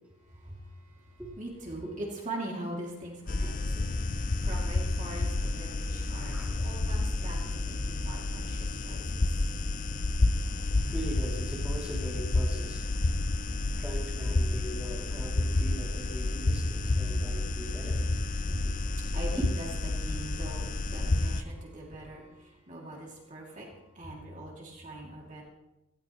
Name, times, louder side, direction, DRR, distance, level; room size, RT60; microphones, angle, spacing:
voice 1, 0.2-9.5 16.0-25.4, right 1 dB, 35° right, -2 dB, 2.6 m, -42 dB
sound 1, 3.3-21.4, left 2 dB, 35° left, 0.5 m, -30 dB
voice 2, 6.3-6.6 10.3-18.7, right 1 dB, 5° right, -4 dB, 2.8 m, -42 dB
17.5 x 16.5 x 3.1 m, 0.99 s
head